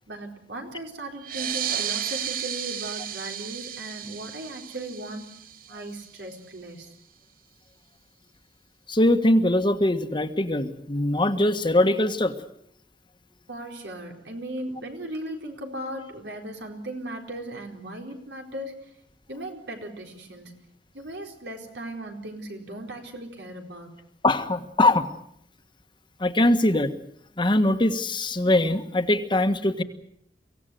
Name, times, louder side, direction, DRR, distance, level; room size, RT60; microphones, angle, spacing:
voice 1, 0.1-5.2 5.7-6.9 13.5-18.9 19.3-20.6 20.9-24.0, right 1 dB, 80° right, 2 dB, 4.3 m, -37 dB
sound 1, 1.2-6.3, right 9 dB, 55° right, 1.0 m, -33 dB
voice 2, 8.9-12.3 24.2-25.1 26.2-26.9 27.4-29.8, left 1 dB, 30° left, 8 dB, 1.5 m, -22 dB
24.0 x 16.5 x 9.2 m, 0.73 s
head